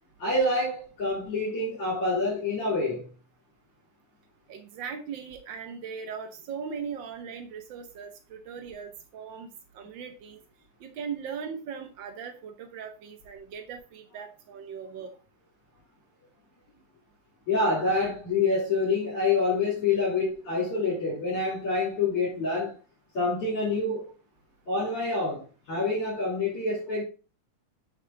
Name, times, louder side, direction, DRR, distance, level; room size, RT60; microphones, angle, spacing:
voice 1, 0.2-3.1 17.5-22.8 23.1-24.1 24.7-27.0, left 3 dB, 50° left, 4.6 m, -27 dB
voice 2, 4.5-10.4 10.8-15.1, right 6 dB, 75° right, 1.0 m, -39 dB
8.1 x 6.5 x 3.9 m
omnidirectional pair, 3.4 m